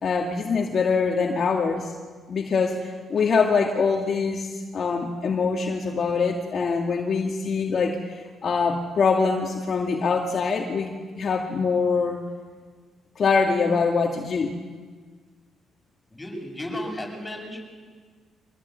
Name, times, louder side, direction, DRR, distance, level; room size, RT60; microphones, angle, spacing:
voice 1, 0.0-1.9 2.3-12.2 13.2-14.6, left 5 dB, 50° left, 1 dB, 2.3 m, -24 dB
voice 2, 16.1-17.6, left 1 dB, 10° left, 1 dB, 8.0 m, -34 dB
24.5 x 19.0 x 9.4 m, 1.5 s
cardioid pair, 90°, 0 cm